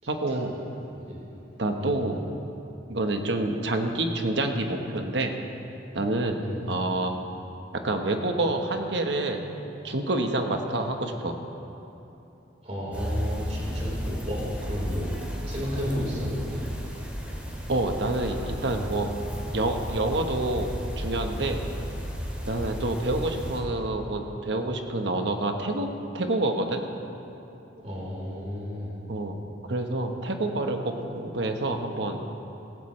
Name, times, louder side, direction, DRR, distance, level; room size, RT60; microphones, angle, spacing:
voice 1, 0.1-0.6 1.6-2.2 2.9-5.4 5.9-6.4 6.7-7.2 7.7-9.4 9.8-11.3 17.7-19.1 19.5-21.6 22.5-25.9 26.1-26.8 29.1-29.4 29.7-32.2, right 2 dB, 75° right, 4 dB, 1.1 m, -27 dB
voice 2, 6.4-6.7 12.6-15.1 15.4-17.0 27.8-28.9, equal, 40° right, -5 dB, 3.9 m, -33 dB
sound 1, 12.9-23.6, equal, 10° right, 2.1 m, -34 dB
17.0 x 15.5 x 3.2 m, 2.9 s
head